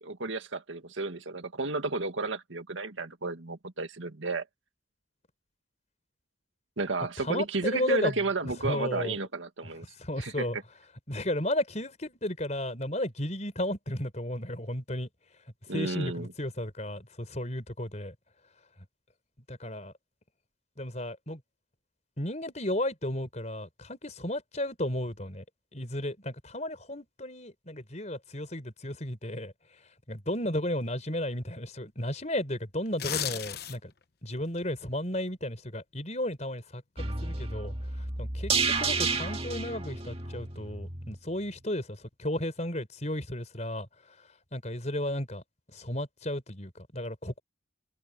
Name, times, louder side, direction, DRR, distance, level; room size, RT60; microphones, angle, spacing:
voice 1, 0.0-4.5 6.8-9.9 10.2-10.6 15.7-16.3, right 3 dB, 85° right, 1.9 m, -32 dB
voice 2, 7.2-9.2 10.0-10.6 11.1-15.1 15.7-18.1 19.5-19.9 20.8-21.4 22.2-25.4 25.7-29.5 30.1-33.9 34.2-37.7 38.2-43.9 44.5-45.4 45.7-47.4, left 1 dB, 35° left, 5.1 m, -34 dB
sound 1, 32.8-34.0 34.4-34.6, left 10 dB, 55° left, 1.0 m, -34 dB
sound 2, 37.0-41.2 41.5-41.6, right 4 dB, 30° right, 1.9 m, -31 dB
head